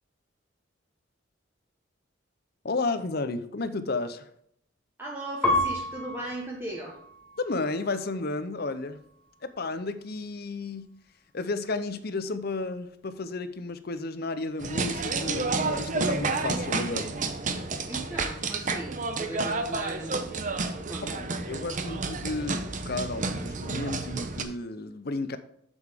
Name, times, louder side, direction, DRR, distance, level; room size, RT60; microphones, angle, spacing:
voice 1, 2.6-4.3 7.4-9.0 9.4-10.9 11.3-17.1 21.0-25.4, left 3 dB, 50° left, 11 dB, 0.7 m, -32 dB
voice 2, 5.0-7.0 17.8-20.6 20.9-21.3, right 1 dB, 10° right, -3 dB, 1.1 m, -38 dB
Piano, 5.4-8.2 8.8-9.5, left 1 dB, 5° left, 1.5 m, -32 dB
sound 1, 14.6-24.4, right 3 dB, 40° right, 0.7 m, -30 dB
8.2 x 7.1 x 3.5 m, 0.70 s
head